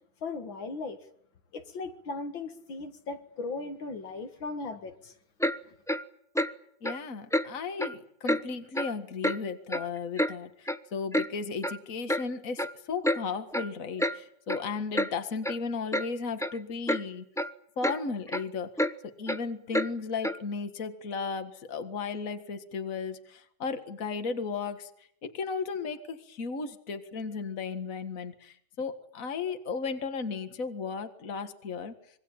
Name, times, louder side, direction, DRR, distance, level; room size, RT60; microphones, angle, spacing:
voice 1, 0.2-1.0 1.5-5.1, left 3 dB, 70° left, 2.5 m, -37 dB
Clock, 5.4-5.6 5.9-6.0 6.3-6.5 6.8-7.0 7.3-7.5 7.8-7.9 8.3-8.4 8.7-8.9 9.2-9.4 9.7-10.3 10.7-10.8 11.1-11.3 11.6-11.8 12.1-12.2 12.6-12.7 13.0-13.2 13.5-13.7 14.0-14.2 14.5-14.6 14.9-15.1 15.4-15.5 15.9-16.1 16.4-16.6 16.9-17.0 17.4-17.5 17.8-18.0 18.3-18.4 18.8-18.9 19.3-19.4 19.7-19.9 20.2-20.4, equal, 5° left, 0.3 m, -28 dB
voice 2, 6.8-17.2 17.8-18.7 19.0-24.9 25.2-31.9, left 5 dB, 45° left, 2.1 m, -35 dB
26.0 x 23.0 x 8.8 m
omnidirectional pair, 2.2 m